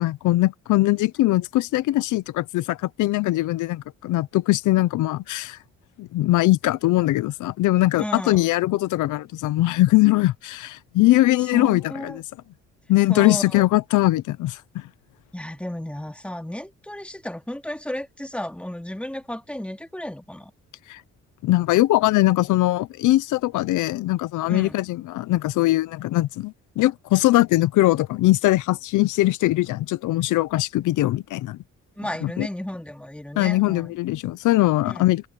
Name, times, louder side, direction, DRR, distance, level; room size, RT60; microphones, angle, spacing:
voice 1, 0.0-5.6 6.0-12.2 12.9-14.9 20.9-21.0 21.4-31.6 32.2-32.5 33.4-35.3, left 17 dB, 85° left, 0.7 m, -21 dB
voice 2, 8.0-8.5 11.5-12.2 13.1-13.7 15.3-20.5 24.4-24.8 32.0-33.9 34.8-35.1, left 1 dB, 5° left, 2.7 m, -33 dB
open air
cardioid pair, 90°, 30 cm